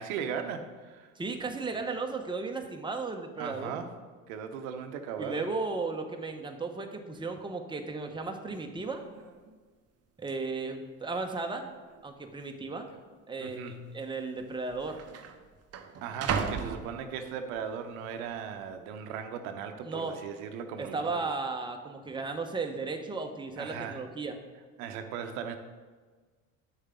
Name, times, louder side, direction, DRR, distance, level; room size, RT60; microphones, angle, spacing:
voice 1, 0.0-1.1 3.4-3.9 4.3-5.4 13.4-14.0 16.0-21.3 23.6-24.1 24.8-25.6, right 7 dB, 75° right, 7 dB, 0.8 m, -38 dB
voice 2, 1.2-3.8 5.2-9.0 10.2-11.7 12.0-12.9 13.3-15.0 19.8-20.2 20.8-24.4, right 3 dB, 10° right, 4 dB, 1.0 m, -35 dB
sound 1, 8.8-8.9 9.2-9.6 10.3-10.4 11.1-11.6 11.9-12.0 12.9-13.1 14.1-14.2 14.4-17.6 18.1-18.5, right 6 dB, 35° right, 0.8 m, -37 dB
9.0 x 6.4 x 3.7 m, 1.4 s
hypercardioid pair, 75°, 43 cm